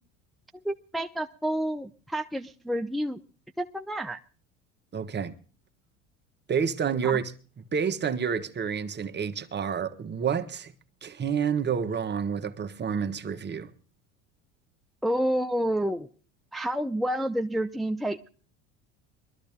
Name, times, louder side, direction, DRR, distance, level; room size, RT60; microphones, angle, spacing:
voice 1, 0.6-3.2 3.6-4.2 7.0-7.2 15.0-16.1 16.5-18.3, right 1 dB, ahead, 0.7 m, -29 dB
voice 2, 4.9-5.4 6.5-7.3 7.6-10.7 11.0-13.7, right 7 dB, 30° right, 1.4 m, -29 dB
22.0 x 13.5 x 3.6 m
supercardioid pair, 90°, 33 cm